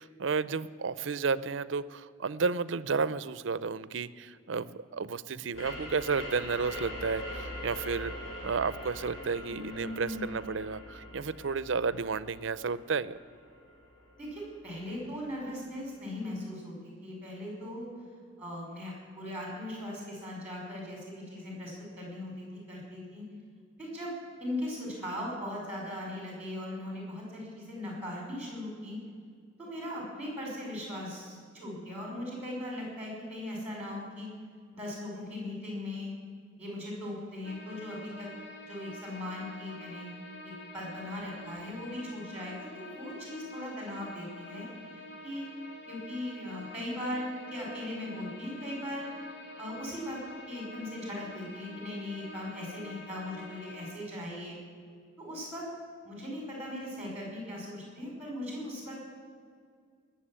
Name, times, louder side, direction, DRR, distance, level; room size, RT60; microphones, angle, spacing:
voice 1, 0.0-8.1 8.4-13.2, right 5 dB, 75° right, 17 dB, 0.5 m, -32 dB
sound 1, 5.5-14.9, left 1 dB, 85° left, 4.5 m, -43 dB
voice 2, 9.4-10.3 14.2-17.9 18.4-23.2 23.8-24.1 24.4-29.0 29.6-34.3 34.7-36.1 36.6-38.3 38.7-40.1 40.4-44.7 45.2-45.5 45.9-50.2 50.5-54.6 55.2-55.6 56.0-59.2, left 1 dB, 5° right, -2 dB, 5.2 m, -39 dB
sound 2, 37.4-53.9, left 2 dB, 60° left, 2.3 m, -47 dB
19.0 x 7.3 x 10.0 m, 2.1 s
head